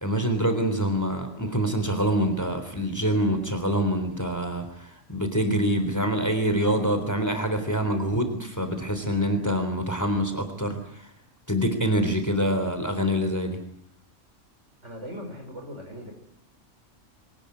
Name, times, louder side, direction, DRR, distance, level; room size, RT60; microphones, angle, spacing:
voice 1, 0.0-11.1 11.5-13.6, equal, 15° left, 7 dB, 3.4 m, -25 dB
voice 2, 14.8-16.1, equal, 60° right, 2 dB, 6.3 m, -39 dB
24.0 x 18.5 x 9.7 m, 0.70 s
omnidirectional pair, 1.4 m